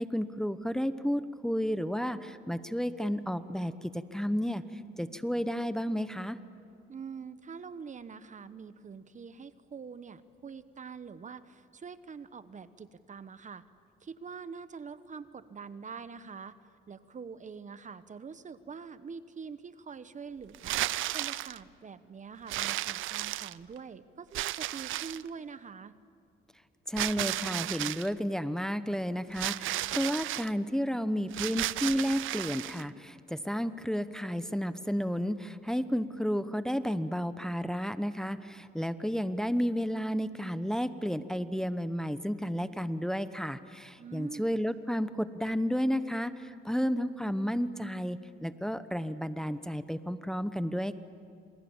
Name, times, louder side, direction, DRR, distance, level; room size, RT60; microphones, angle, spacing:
voice 1, 0.0-4.6 5.0-6.4 26.9-50.9, equal, 5° left, 12 dB, 1.0 m, -32 dB
voice 2, 6.9-13.6 14.0-16.6 16.9-20.8 21.1-25.9 44.0-44.5, right 6 dB, 40° right, 13 dB, 1.0 m, -45 dB
sound 1, 20.5-21.6 22.5-23.8 24.3-25.3 27.0-28.1 29.3-30.5 31.3-32.8, right 15 dB, 80° right, 0.6 m, -33 dB
27.5 x 27.5 x 7.2 m, 2.5 s
cardioid pair, 90°, 20 cm